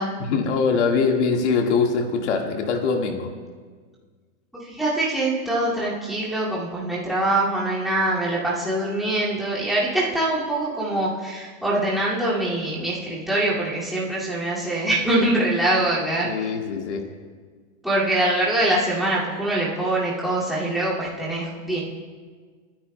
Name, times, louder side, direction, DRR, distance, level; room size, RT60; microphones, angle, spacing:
voice 1, 0.2-3.3 16.2-17.1, left 5 dB, 55° left, 2 dB, 1.8 m, -23 dB
voice 2, 4.6-16.3 17.8-21.8, right 1 dB, ahead, -9 dB, 2.3 m, -24 dB
30.0 x 10.0 x 2.2 m, 1.6 s
supercardioid pair, 165°, 40 cm